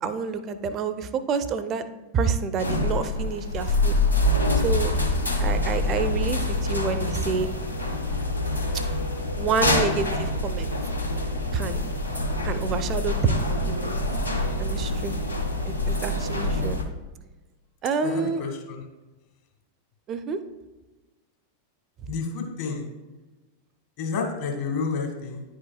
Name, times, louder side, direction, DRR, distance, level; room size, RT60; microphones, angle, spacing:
voice 1, 0.0-1.9 2.1-4.0 4.6-5.0 5.4-7.5 9.4-10.7 11.5-11.9 12.4-13.9 14.6-15.2 15.6-16.8 17.8-18.4 20.1-20.4, right 5 dB, 30° right, 11 dB, 0.5 m, -28 dB
sound 1, 2.6-16.8, left 1 dB, 85° left, 0.7 m, -26 dB
voice 2, 18.0-18.8 22.1-22.9 24.0-25.4, left 4 dB, 45° left, 3 dB, 1.3 m, -30 dB
9.9 x 4.9 x 2.4 m, 1.2 s
figure-of-eight pair, 90°, 0 cm